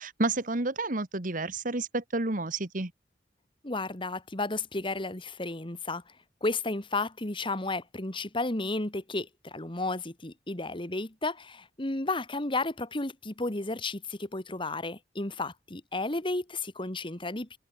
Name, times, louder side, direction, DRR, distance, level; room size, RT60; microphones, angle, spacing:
voice 1, 0.0-2.9, right 2 dB, 50° right, 1.7 m, -30 dB
voice 2, 3.6-6.1 6.4-17.6, left 2 dB, 30° left, 2.0 m, -33 dB
head